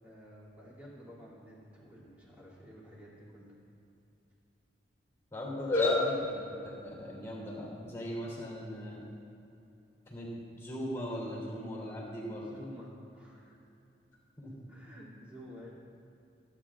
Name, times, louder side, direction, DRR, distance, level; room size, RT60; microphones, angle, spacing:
voice 1, 0.0-3.6 12.5-13.6 14.7-15.7, equal, 10° right, -8 dB, 2.8 m, -51 dB
voice 2, 5.3-9.0 10.1-10.3 10.6-12.5 14.4-14.6, left 2 dB, 15° left, -4 dB, 3.0 m, -35 dB
28.0 x 9.7 x 2.5 m, 2.8 s
head